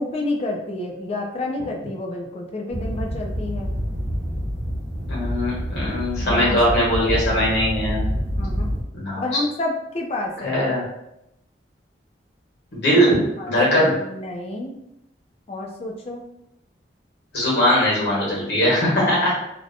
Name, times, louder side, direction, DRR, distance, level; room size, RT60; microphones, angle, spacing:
voice 1, 0.0-3.7 6.2-7.2 8.4-8.7 9.2-10.6 13.4-14.7 15.5-16.2, left 2 dB, 35° left, 1 dB, 0.3 m, -29 dB
sound 1, 2.7-8.8, equal, 50° right, 0.9 m, -27 dB
voice 2, 5.1-8.1 8.9-9.3 10.4-10.8 12.7-13.1 13.5-13.9 17.3-19.3, equal, 65° left, -6 dB, 1.1 m, -20 dB
2.6 x 2.1 x 2.6 m, 0.84 s
head